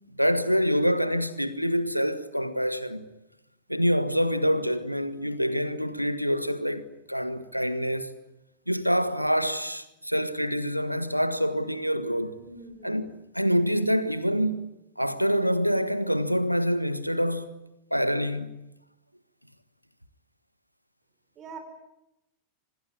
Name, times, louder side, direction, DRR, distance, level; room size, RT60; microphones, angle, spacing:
voice 1, 0.1-3.1 3.7-8.1 8.7-12.4 12.8-13.1 13.3-14.7 15.0-17.5 17.9-18.5, equal, 90° right, 1.6 m, -26 dB
voice 2, 12.4-13.0 21.3-21.6, right 4 dB, 30° right, 5.0 m, -43 dB
26.0 x 19.5 x 9.8 m
figure-of-eight pair, 90°, 0 cm